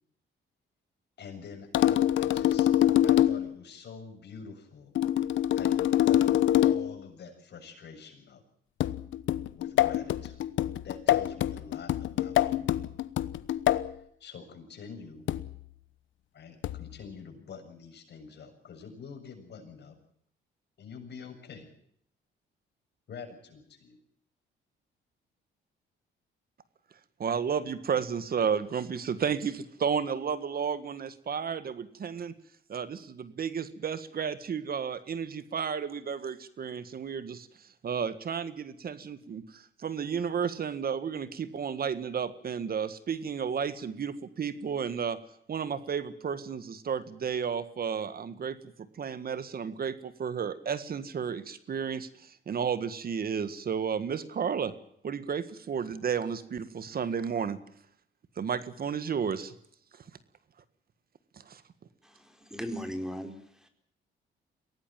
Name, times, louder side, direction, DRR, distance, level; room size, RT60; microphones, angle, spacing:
voice 1, 1.2-2.7 3.0-4.9 5.6-8.4 9.5-12.7 13.9-15.3 16.3-20.0 20.8-21.7 23.1-24.0, left 6 dB, 60° left, 4 dB, 7.4 m, -46 dB
sound 1, 1.7-3.5 5.0-7.0 8.8-13.9 15.3-15.6 16.6-17.0, left 12 dB, 75° left, 1.0 m, -25 dB
voice 2, 27.2-32.3 32.7-45.2 45.5-48.6 48.9-54.7 55.0-57.6 58.4-59.5 61.5-61.6, right 7 dB, 50° right, 13 dB, 1.7 m, -32 dB
voice 3, 62.0-63.7, equal, 5° right, 6 dB, 4.5 m, -38 dB
23.0 x 17.5 x 7.5 m, 0.69 s
cardioid pair, 90°, 20 cm